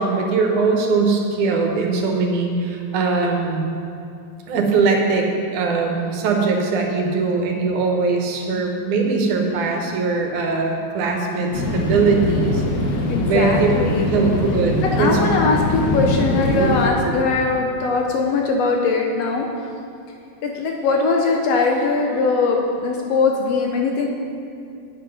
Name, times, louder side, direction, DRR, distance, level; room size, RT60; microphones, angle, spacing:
voice 1, 0.0-3.7 4.5-12.6 13.2-13.7 14.1-15.3 16.5-16.7 17.0-17.1, right 4 dB, 85° right, 2 dB, 2.5 m, -21 dB
sound 1, 11.5-16.9, left 2 dB, 90° left, 0.9 m, -22 dB
voice 2, 12.7-14.1 14.8-19.5 20.4-24.1, left 4 dB, 70° left, 1 dB, 1.6 m, -21 dB
8.7 x 7.8 x 5.5 m, 2.5 s
omnidirectional pair, 3.4 m